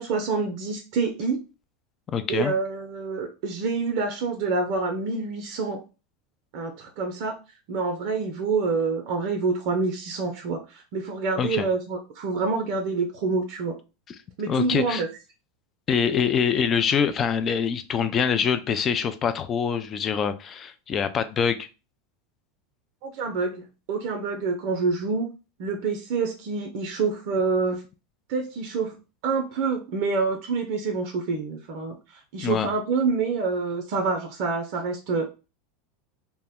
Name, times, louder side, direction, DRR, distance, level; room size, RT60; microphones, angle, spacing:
voice 1, 0.0-1.4 2.3-5.8 6.5-7.4 7.7-13.8 14.4-15.1 23.0-25.3 25.6-27.8 28.3-28.9 29.2-35.3, right 4 dB, 60° right, 4 dB, 0.5 m, -27 dB
voice 2, 2.1-2.5 11.4-11.7 14.5-15.0 15.9-21.7 32.4-32.7, left 7 dB, 35° left, 10 dB, 0.4 m, -24 dB
2.1 x 2.1 x 3.5 m, 0.31 s
hypercardioid pair, 90°, 0 cm